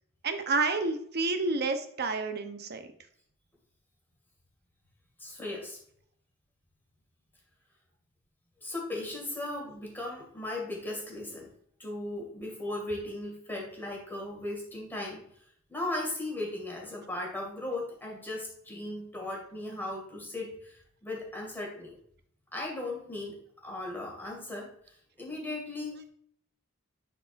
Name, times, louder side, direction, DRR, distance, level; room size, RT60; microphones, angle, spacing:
voice 1, 0.2-2.9, right 3 dB, 50° right, 7 dB, 0.8 m, -29 dB
voice 2, 5.2-5.8 8.6-11.5 11.8-15.2 15.7-21.9 22.5-23.4 23.6-26.0, left 2 dB, 10° left, -2 dB, 2.2 m, -37 dB
9.7 x 4.7 x 2.6 m, 0.66 s
head